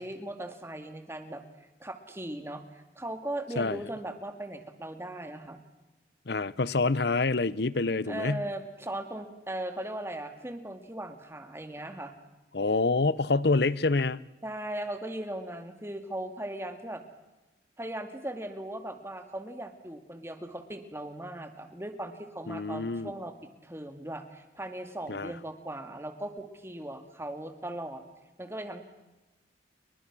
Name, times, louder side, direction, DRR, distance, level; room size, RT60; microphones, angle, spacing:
voice 1, 0.0-1.4 1.8-5.6 8.1-12.1 14.4-17.0 17.8-28.0 28.4-28.8, right 1 dB, 15° right, 7 dB, 2.2 m, -38 dB
voice 2, 6.3-8.4 12.5-14.2 22.5-23.1 25.1-25.3, left 3 dB, 60° left, 19 dB, 0.8 m, -27 dB
29.5 x 23.5 x 6.2 m, 1.0 s
head